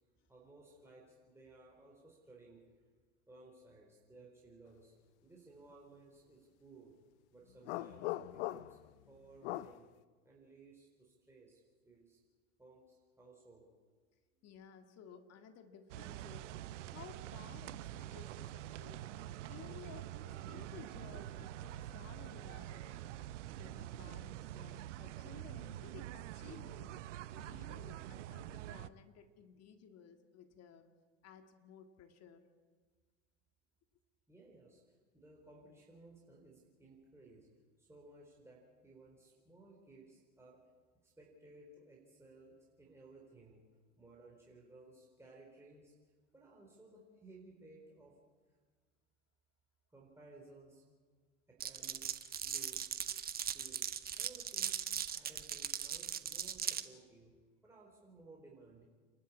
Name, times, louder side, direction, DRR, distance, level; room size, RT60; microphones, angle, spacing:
voice 1, 0.3-2.6 3.3-4.9 5.2-7.0 7.3-8.8 9.1-9.9 10.2-12.2 12.6-13.7 14.4-14.5 34.3-37.5 37.8-40.7 41.0-43.7 44.0-45.9 46.3-48.2 49.9-50.8 51.5-53.0 53.4-54.8 55.1-57.4 57.6-58.8, right 2 dB, 5° right, -3 dB, 4.4 m, -59 dB
sound 1, 7.6-8.9 9.4-9.8, left 16 dB, 65° left, 0.7 m, -40 dB
voice 2, 14.4-16.5 16.8-19.0 19.5-23.1 23.5-27.0 27.4-30.9 31.2-32.4, left 7 dB, 45° left, 7 dB, 2.1 m, -56 dB
sound 2, 15.9-28.9, right 13 dB, 70° right, 0.8 m, -46 dB
Glass, 51.6-56.8, right 8 dB, 25° right, 1.1 m, -39 dB
28.0 x 12.0 x 8.5 m, 1.5 s
hypercardioid pair, 90°, 37 cm